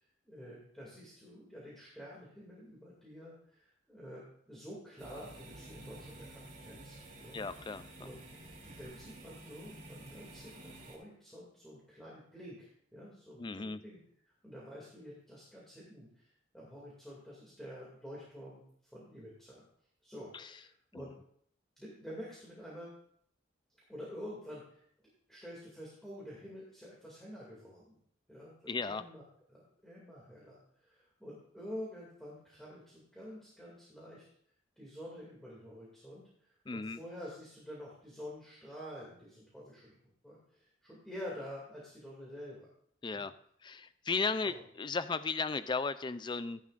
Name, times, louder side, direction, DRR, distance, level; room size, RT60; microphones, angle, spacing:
voice 1, 0.2-7.7 8.0-8.2 8.6-14.0 14.4-16.3 16.5-19.6 20.0-21.1 21.8-22.9 23.9-24.8 25.3-27.9 28.3-28.5 28.9-29.2 29.5-34.2 34.8-36.2 36.7-39.9 40.2-42.7 43.1-43.3 44.4-44.5, equal, ahead, -6 dB, 2.3 m, -48 dB
sound 1, 5.0-11.0, right 1 dB, 35° right, 2.9 m, -51 dB
voice 2, 7.3-8.1 13.4-13.8 20.3-20.5 20.9-21.0 28.7-29.0 36.7-37.0 43.0-43.3 43.6-46.6, left 4 dB, 20° left, 13 dB, 0.3 m, -35 dB
14.5 x 10.5 x 2.5 m, 0.65 s
head